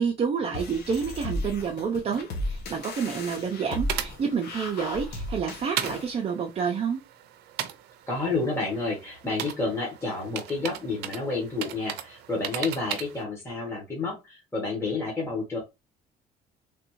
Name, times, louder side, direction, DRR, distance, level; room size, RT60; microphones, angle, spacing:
voice 1, 0.0-7.0, right 6 dB, 35° right, 0.6 m, -29 dB
sound 1, 0.5-6.1, left 1 dB, 75° left, 1.0 m, -35 dB
sound 2, 2.8-13.2, right 11 dB, 80° right, 0.5 m, -38 dB
voice 2, 8.1-15.6, left 3 dB, 15° left, 1.2 m, -30 dB
3.4 x 2.6 x 3.0 m
cardioid pair, 110°, 17 cm